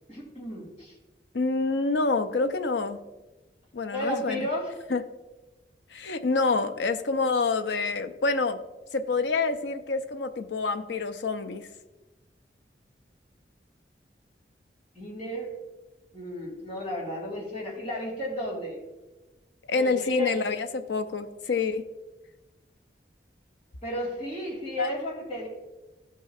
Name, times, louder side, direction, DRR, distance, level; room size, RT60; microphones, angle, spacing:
voice 1, 0.1-1.0 3.9-4.7 14.9-15.5 16.1-18.8 19.8-20.4 23.8-25.5, equal, 40° left, -4 dB, 2.7 m, -33 dB
voice 2, 1.3-3.0 3.7-4.5 4.9-5.0 5.9-8.6 8.9-11.7 19.7-21.8 24.8-24.9, left 3 dB, 90° left, 9 dB, 0.6 m, -27 dB
15.5 x 5.6 x 2.4 m, 1.1 s
head